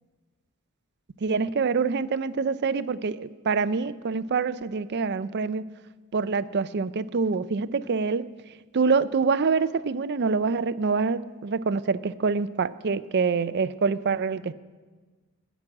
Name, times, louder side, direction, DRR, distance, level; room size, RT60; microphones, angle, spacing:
voice 1, 1.2-5.6 6.1-8.2 8.7-14.5, right 5 dB, 50° right, 15 dB, 0.5 m, -25 dB
16.5 x 6.1 x 9.6 m, 1.3 s
head